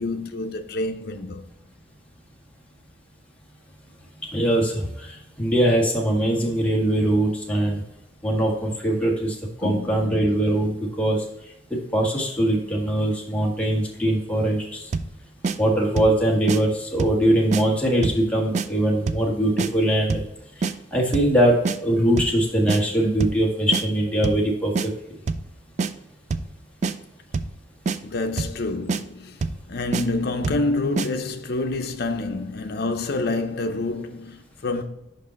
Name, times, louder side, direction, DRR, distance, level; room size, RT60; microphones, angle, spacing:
voice 1, 0.0-1.5 9.6-10.2 28.0-29.4 29.7-34.8, left 2 dB, 60° left, 0.7 m, -27 dB
voice 2, 4.3-7.8 8.2-11.2 11.7-14.9 15.6-20.2 20.6-24.9, right 1 dB, 10° left, 1.5 m, -22 dB
sound 1, 14.9-15.2 15.4-15.6 16.0-16.2 16.5-16.6 17.0-17.2 17.5-17.6 18.0-18.3 18.5-18.7 19.1-19.3 19.6-19.7 20.1-20.3 20.6-20.7 21.1-21.4 21.7-21.8 22.2-22.4 22.7-22.8 23.2-23.4 23.7-23.8 24.2-24.5 24.8-24.9 25.3-25.5 25.8-25.9 26.3-26.5 26.8-27.0 27.3-27.6 27.9-28.0 28.4-28.6 28.9-29.0 29.4-29.6 29.9-30.1 30.4-30.7 31.0-31.1, right 4 dB, 40° right, 0.3 m, -25 dB
5.4 x 5.3 x 3.9 m
head